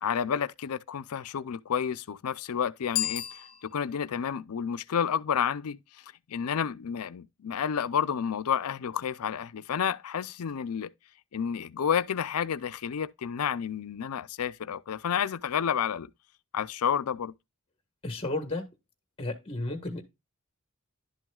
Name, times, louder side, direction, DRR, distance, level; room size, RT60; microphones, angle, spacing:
voice 1, 0.0-5.8 6.3-10.9 11.3-16.1 16.5-17.3, left 7 dB, 90° left, 0.5 m, -30 dB
Bicycle bell, 2.9-4.1, left 10 dB, 45° left, 1.3 m, -33 dB
voice 2, 18.0-18.7 19.2-20.0, left 2 dB, 25° left, 1.5 m, -33 dB
11.5 x 6.1 x 2.3 m
head